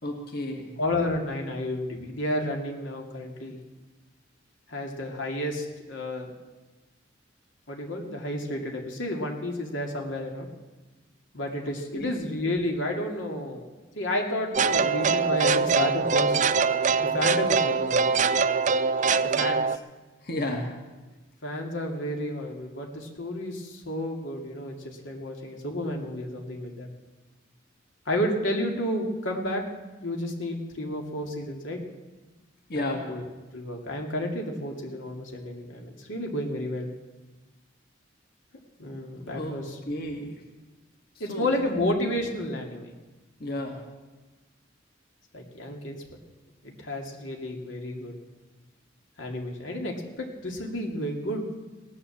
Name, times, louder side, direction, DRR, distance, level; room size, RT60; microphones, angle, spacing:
voice 1, 0.0-0.7 11.9-12.1 20.2-20.7 32.7-33.1 39.3-39.6 39.8-40.4 41.3-41.7 43.4-43.8, left 1 dB, 55° left, 1 dB, 2.2 m, -32 dB
voice 2, 0.8-3.6 4.7-6.3 7.7-10.5 11.3-13.7 14.0-16.4 17.0-18.4 19.3-19.6 21.4-26.9 28.1-29.6 30.0-31.8 32.7-33.2 33.5-36.9 38.8-39.8 41.2-42.9 45.3-46.0 46.6-48.1 49.2-51.4, left 1 dB, 85° left, 1 dB, 2.5 m, -31 dB
sound 1, 14.5-19.8, right 5 dB, 40° right, 0.5 m, -23 dB
18.0 x 11.0 x 7.3 m, 1.2 s
head